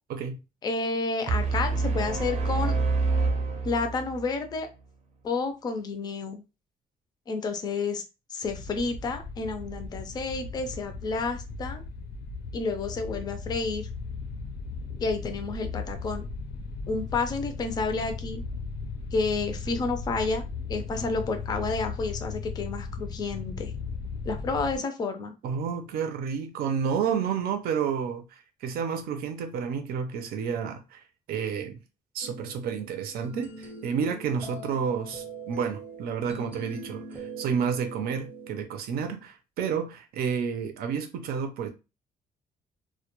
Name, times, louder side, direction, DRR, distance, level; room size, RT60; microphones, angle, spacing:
voice 1, 0.6-2.7 3.6-4.7 5.2-6.4 7.3-8.0 8.3-11.8 12.5-13.9 15.0-16.2 16.9-18.4 19.1-20.4 20.7-23.7 24.2-25.3, left 3 dB, 25° left, 0.4 m, -30 dB
sound 1, 1.3-4.3, right 3 dB, 45° right, 0.6 m, -26 dB
sound 2, 8.4-24.8, left 4 dB, 85° left, 0.6 m, -37 dB
voice 2, 25.4-31.0 31.3-31.8 32.1-41.7, right 7 dB, 85° right, 0.6 m, -30 dB
sound 3, 32.2-38.6, right 3 dB, 10° right, 0.6 m, -42 dB
2.2 x 2.1 x 2.9 m
cardioid pair, 175°, 15 cm